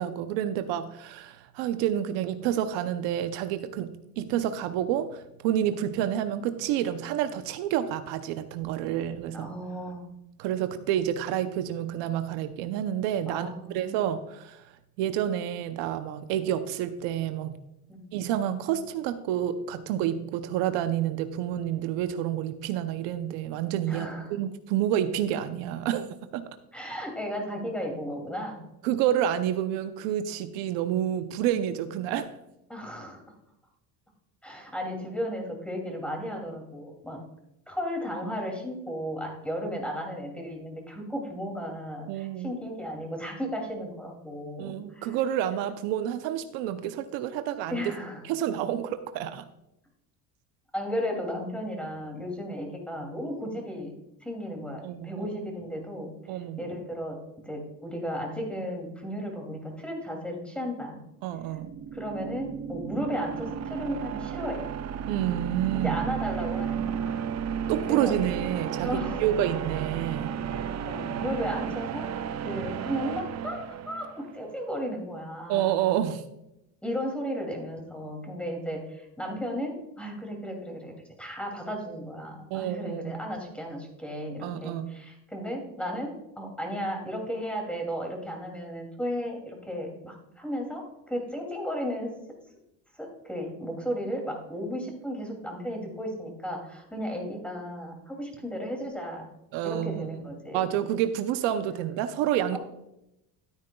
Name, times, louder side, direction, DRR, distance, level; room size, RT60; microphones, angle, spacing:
voice 1, 0.0-9.5 10.4-13.5 13.7-14.6 15.0-17.6 18.1-26.4 28.8-32.4 42.1-42.5 44.6-47.9 48.3-49.4 54.8-55.2 56.3-56.7 61.2-61.7 65.1-66.0 67.7-70.3 75.5-76.2 82.5-83.1 84.4-84.9 99.5-100.1 100.5-102.6, right 11 dB, 85° right, 10 dB, 0.8 m, -29 dB
voice 2, 9.3-10.1 13.3-13.9 17.9-18.0 23.9-24.3 26.7-28.6 32.7-33.2 34.4-37.2 37.7-45.2 47.7-48.2 50.7-53.9 54.2-56.1 56.6-57.2 57.4-61.0 61.9-64.6 65.8-67.2 67.9-68.2 68.8-69.2 70.4-72.1 72.4-75.7 76.8-80.9 81.2-92.1 92.9-99.2 99.6-100.7 102.5-102.6, equal, 5° left, 1 dB, 2.7 m, -34 dB
sound 1, 61.4-74.4, right 8 dB, 40° right, 0.6 m, -33 dB
13.0 x 9.0 x 2.3 m, 0.85 s
cardioid pair, 115°, 43 cm